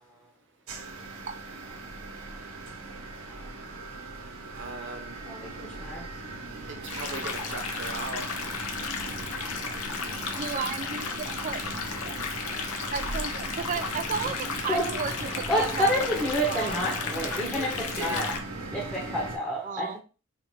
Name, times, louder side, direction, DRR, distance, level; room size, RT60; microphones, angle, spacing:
sound 1, 0.7-19.4, right 2 dB, 80° right, 0.9 m, -39 dB
voice 1, 4.5-5.2 6.5-8.3 17.5-17.7 17.9-18.3, right 3 dB, 60° right, 0.9 m, -38 dB
voice 2, 5.3-6.1 9.0-9.1 9.4-9.5 10.3-10.4 13.7-13.9 14.3-14.4 14.7-20.0, equal, 5° left, 0.8 m, -30 dB
sound 2, 6.9-18.4, left 5 dB, 85° left, 0.7 m, -34 dB
voice 3, 10.4-11.6 12.9-16.8 19.6-20.0, right 6 dB, 35° right, 0.3 m, -34 dB
4.1 x 2.5 x 3.0 m
head